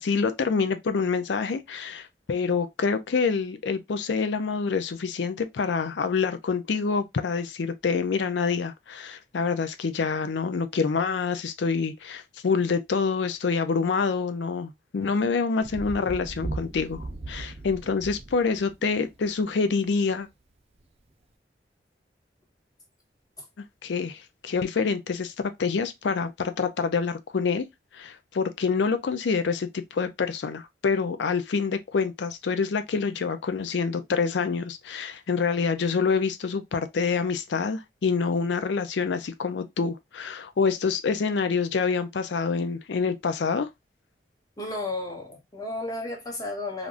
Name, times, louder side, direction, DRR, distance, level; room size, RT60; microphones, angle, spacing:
voice 1, 0.0-20.3 23.8-27.6 27.9-43.7, left 5 dB, 85° left, 0.4 m, -26 dB
Thunder, 15.6-19.5 20.8-20.9, right 2 dB, 35° right, 0.5 m, -37 dB
voice 2, 44.6-46.9, left 2 dB, 20° left, 0.9 m, -33 dB
3.4 x 2.5 x 2.4 m
head